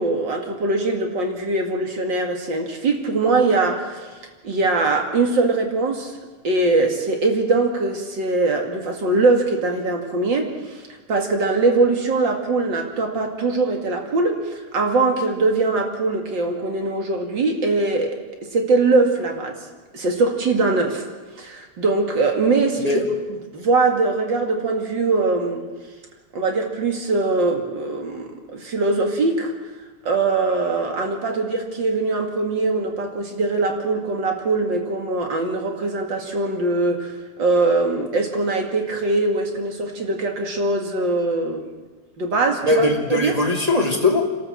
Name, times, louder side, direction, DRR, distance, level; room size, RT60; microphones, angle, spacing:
voice 1, 0.0-4.0 4.4-6.1 6.4-10.8 11.1-18.2 18.5-19.6 19.9-21.0 21.4-22.9 23.5-25.6 26.3-29.5 30.0-41.6 42.2-42.8 43.1-43.3, right 3 dB, 40° right, 3 dB, 2.6 m, -22 dB
voice 2, 42.6-44.2, left 2 dB, 15° right, -1 dB, 1.8 m, -20 dB
28.0 x 13.0 x 7.8 m, 1.3 s
omnidirectional pair, 3.5 m